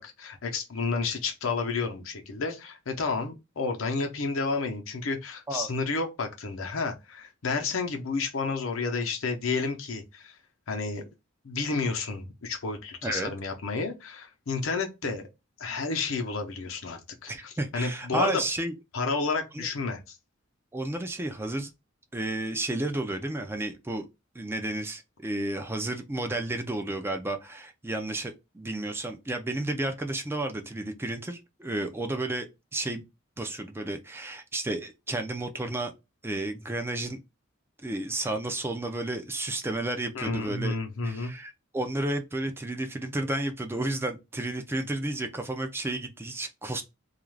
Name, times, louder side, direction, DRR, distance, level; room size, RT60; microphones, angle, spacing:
voice 1, 0.0-10.4 10.7-11.0 11.4-15.3 15.6-18.4 18.9-20.2 40.1-41.3, left 4 dB, 80° left, 0.7 m, -31 dB
voice 2, 17.3-18.7 19.5-19.7 20.7-21.7 22.1-24.1 24.3-33.0 33.4-35.9 36.2-37.2 37.8-40.8 41.0-46.8, right 2 dB, 10° right, 0.3 m, -32 dB
2.4 x 2.3 x 3.1 m
head